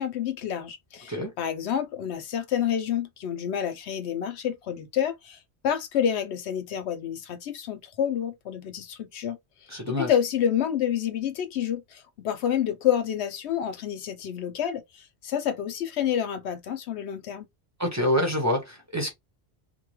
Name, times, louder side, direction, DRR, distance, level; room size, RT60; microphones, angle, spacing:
voice 1, 0.0-5.4 5.6-9.4 10.0-17.5, left 9 dB, 80° left, 0.9 m, -28 dB
voice 2, 9.7-10.1 17.8-19.1, left 1 dB, 15° right, 0.9 m, -26 dB
2.5 x 2.2 x 3.1 m
omnidirectional pair, 1.1 m